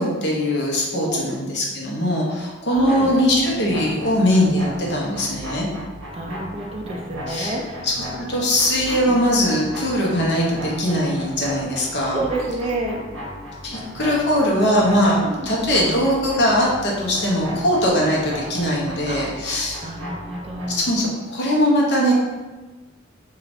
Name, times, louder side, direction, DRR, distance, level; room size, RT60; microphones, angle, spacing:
voice 1, 0.0-5.7 7.3-7.5 7.8-12.2 13.6-19.9 20.7-22.1, equal, 55° left, -3 dB, 0.6 m, -21 dB
voice 2, 2.6-3.1 6.1-7.9 8.9-9.2 12.1-13.0 15.2-15.5 18.0-18.2 19.1-19.2 19.8-20.9, right 2 dB, 30° right, 0 dB, 0.3 m, -29 dB
sound 1, 2.7-20.8, equal, 85° right, 0.7 m, -36 dB
2.5 x 2.3 x 3.3 m, 1.2 s
head